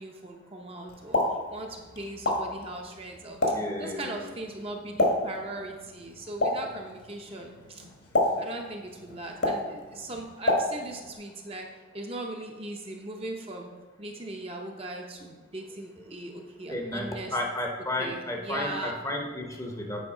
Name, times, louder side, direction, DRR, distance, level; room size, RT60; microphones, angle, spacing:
voice 1, 0.0-3.4 3.8-7.9 8.4-11.7 11.9-13.7 14.0-17.4 18.0-18.9, right 2 dB, 30° right, 1 dB, 0.7 m, -39 dB
Explosion, 0.9-11.2, left 1 dB, 65° left, 1.3 m, -31 dB
voice 2, 3.5-4.3 16.7-20.0, left 1 dB, 15° left, 1 dB, 0.7 m, -33 dB
8.6 x 4.6 x 4.9 m, 1.3 s
head